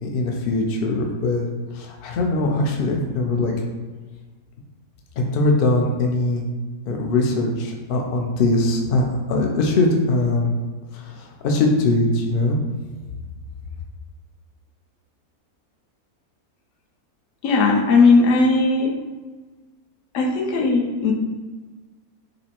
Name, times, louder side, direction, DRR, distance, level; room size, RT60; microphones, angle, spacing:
voice 1, 0.0-3.5 5.2-6.4 6.9-10.5 10.9-12.6, left 2 dB, 85° left, 1 dB, 0.4 m, -21 dB
voice 2, 17.4-18.9 20.1-21.1, left 3 dB, 65° left, 1 dB, 0.8 m, -17 dB
5.1 x 2.0 x 2.9 m, 1.3 s
omnidirectional pair, 1.6 m